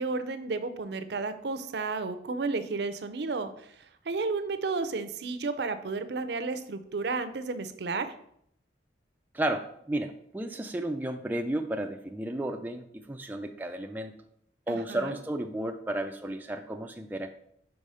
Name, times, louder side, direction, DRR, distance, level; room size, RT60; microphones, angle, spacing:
voice 1, 0.0-3.5 4.1-8.1 14.7-15.2, right 4 dB, 60° right, 10 dB, 0.5 m, -32 dB
voice 2, 9.3-14.1 14.7-17.3, right 1 dB, 10° right, 4 dB, 0.3 m, -33 dB
4.8 x 4.5 x 5.5 m, 0.70 s
head